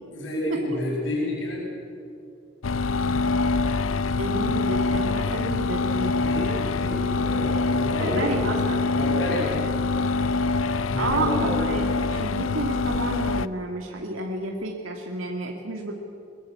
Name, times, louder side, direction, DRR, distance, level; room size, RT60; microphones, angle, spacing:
voice 1, 0.1-1.6 6.2-8.5 8.9-9.6 10.9-11.7, left 1 dB, 65° left, -2 dB, 7.0 m, -29 dB
sound 1, 2.6-13.5, left 3 dB, 85° left, 0.6 m, -25 dB
voice 2, 4.2-6.2 8.0-8.8 11.0-15.9, right 2 dB, 85° right, 1 dB, 2.1 m, -30 dB
22.5 x 20.5 x 8.4 m, 2.6 s
head